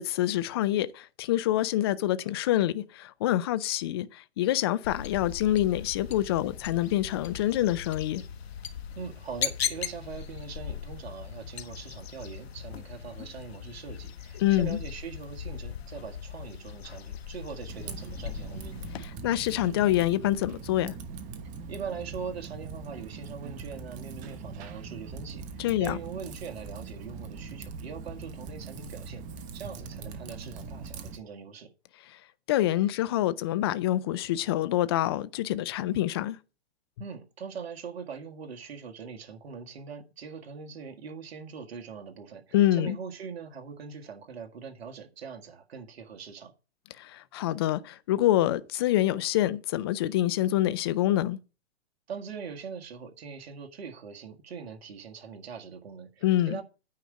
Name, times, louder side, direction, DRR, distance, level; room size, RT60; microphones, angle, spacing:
voice 1, 0.0-8.2 14.4-14.8 19.0-20.9 25.6-26.0 32.5-36.4 42.5-43.0 47.0-51.4 56.2-56.6, left 14 dB, 25° left, 0.4 m, -26 dB
sound 1, 4.8-19.0, left 8 dB, 65° left, 1.5 m, -39 dB
voice 2, 9.0-18.9 21.7-29.2 29.5-31.7 37.0-46.5 52.1-56.6, right 6 dB, 65° right, 1.8 m, -42 dB
Typing, 17.7-31.2, right 4 dB, 25° right, 1.1 m, -41 dB
9.4 x 5.0 x 7.8 m
hypercardioid pair, 140°, 33 cm